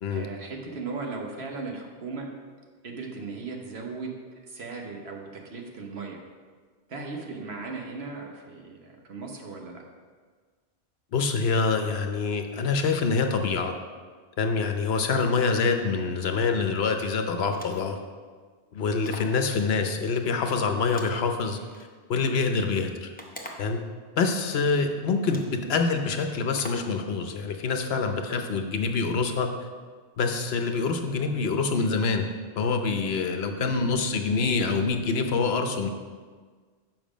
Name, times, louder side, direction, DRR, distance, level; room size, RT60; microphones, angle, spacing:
voice 1, 0.1-2.3 2.8-4.1 4.5-6.2 6.9-9.8 19.0-19.3 33.3-34.0, right 4 dB, 70° right, 1 dB, 1.3 m, -37 dB
voice 2, 11.1-13.7 14.4-18.0 18.7-23.1 23.6-23.8 24.2-25.4 25.7-29.5 30.2-32.2 32.6-35.9, left 4 dB, 70° left, 5 dB, 1.0 m, -26 dB
sound 1, 17.4-18.0 19.0-19.4 20.9-21.9 23.2-23.8 24.7-24.8 25.2-25.6 26.6-26.9, equal, 10° left, 0.6 m, -43 dB
7.3 x 5.9 x 5.0 m, 1.5 s
omnidirectional pair, 1.1 m